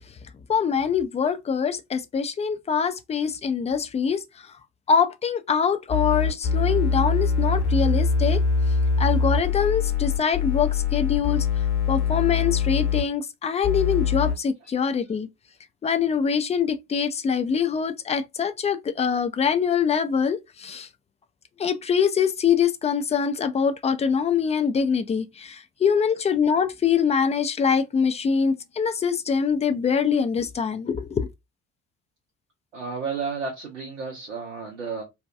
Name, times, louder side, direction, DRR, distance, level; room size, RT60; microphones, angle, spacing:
voice 1, 0.5-4.2 4.9-8.4 9.0-11.5 11.9-15.3 15.8-20.9 21.6-31.3, left 6 dB, 20° left, 0.4 m, -24 dB
sound 1, 5.9-13.0 13.6-14.3, left 5 dB, 50° left, 1.0 m, -23 dB
voice 2, 32.7-35.0, right 5 dB, 90° right, 0.6 m, -32 dB
2.7 x 2.2 x 2.3 m
figure-of-eight pair, 50°, 35 cm